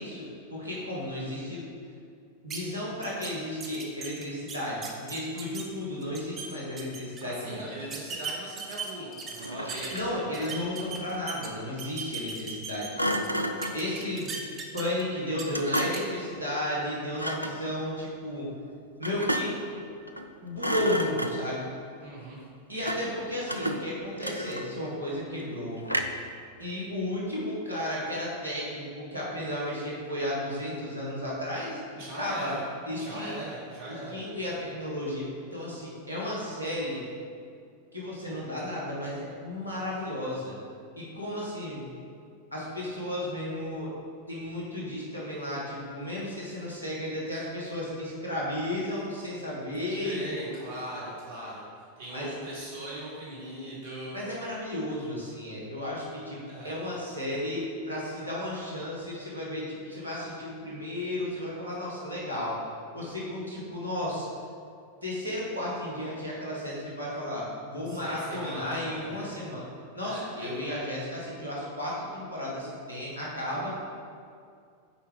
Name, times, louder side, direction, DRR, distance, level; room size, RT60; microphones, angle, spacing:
voice 1, 0.0-1.7 2.4-7.6 9.9-13.3 13.7-14.3 14.7-18.5 19.0-19.6 20.4-21.7 22.7-25.8 26.6-31.8 32.1-32.5 32.9-33.4 34.1-37.0 37.9-40.6 41.0-41.8 42.5-43.9 44.3-50.2 50.5-50.6 52.1-52.3 54.1-62.6 62.9-64.3 65.0-69.6 69.9-73.8, left 1 dB, 85° right, -6 dB, 1.5 m, -33 dB
sound 1, 2.5-2.6 3.0-3.3 3.6-5.6 6.0-6.5 6.8-7.2 7.9-10.0 10.3-11.5 11.8-13.3 13.6-15.0 15.3-15.4 15.8-16.0, right 5 dB, 25° right, 0.8 m, -38 dB
voice 2, 7.2-10.5 22.0-22.4 31.9-32.6 33.0-34.3 50.0-54.2 56.5-56.7 67.9-69.4 70.0-70.6, right 1 dB, 60° right, -5 dB, 1.3 m, -40 dB
Thump thud, 9.4-10.2 13.0-13.9 15.5-16.2 17.1-17.6 19.0-19.7 20.1-20.3 20.6-21.6 22.8-23.2 23.5-24.9 25.9-26.3, equal, 90° left, 0.4 m, -31 dB
6.7 x 4.6 x 3.9 m, 2.3 s
figure-of-eight pair, 90°, 0 cm